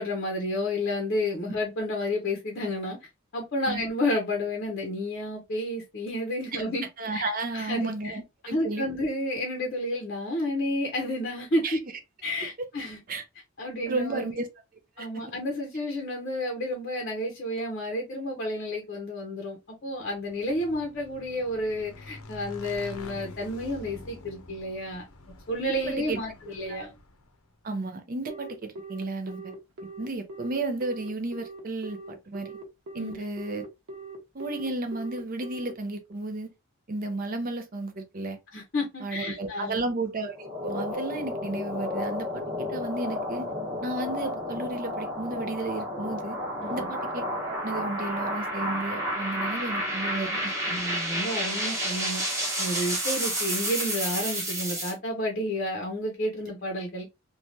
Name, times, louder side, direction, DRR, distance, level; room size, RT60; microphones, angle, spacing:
voice 1, 0.0-3.0 3.3-6.8 7.1-8.2 8.4-11.8 12.2-13.0 13.6-14.4 15.0-25.0 25.5-26.9 33.0-33.2 38.5-39.9 46.6-46.9 50.7-52.2 52.6-57.1, left 1 dB, 45° left, 0.6 m, -31 dB
voice 2, 7.0-8.9 11.6-11.8 12.6-12.7 13.1-13.2 13.9-14.5 15.0-15.2 25.9-26.2 26.6-26.9 27.6-29.5 30.0-32.6 32.9-33.6 34.3-36.5 36.9-38.4 39.0-43.5 43.8-46.4 46.7-50.5, right 2 dB, 40° right, 0.5 m, -33 dB
Motorcycle / Engine, 20.1-27.4, left 1 dB, 90° left, 0.7 m, -46 dB
Telephone, 28.3-35.7, right 3 dB, 65° right, 0.9 m, -41 dB
sound 1, 40.3-54.9, equal, 15° right, 0.9 m, -31 dB
3.1 x 2.2 x 2.6 m
head